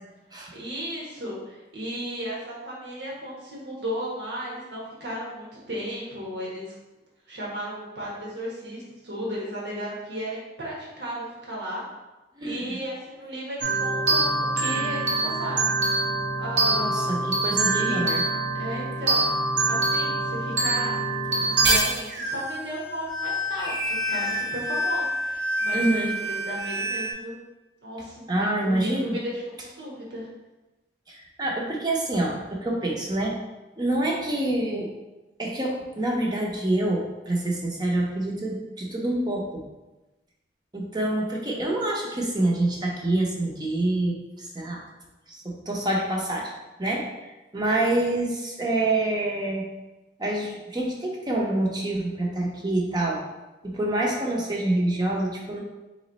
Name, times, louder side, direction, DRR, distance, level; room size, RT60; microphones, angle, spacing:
voice 1, 0.5-6.7 7.3-11.8 12.4-15.7 16.4-17.1 17.7-18.1 18.5-19.3 19.7-21.0 21.3-27.3 27.8-30.3, equal, 75° right, -5 dB, 1.3 m, -35 dB
voice 2, 12.4-12.8 16.6-18.3 25.7-26.1 28.3-29.2 31.1-33.3 33.8-34.9 35.4-39.6 40.7-44.8 45.3-46.5 46.8-47.0 47.5-49.6 50.2-53.2 53.6-55.6, right 1 dB, 25° right, -2 dB, 0.7 m, -26 dB
sound 1, 13.6-27.1, right 2 dB, 90° right, 1.0 m, -25 dB
3.8 x 3.1 x 3.9 m, 1.1 s
head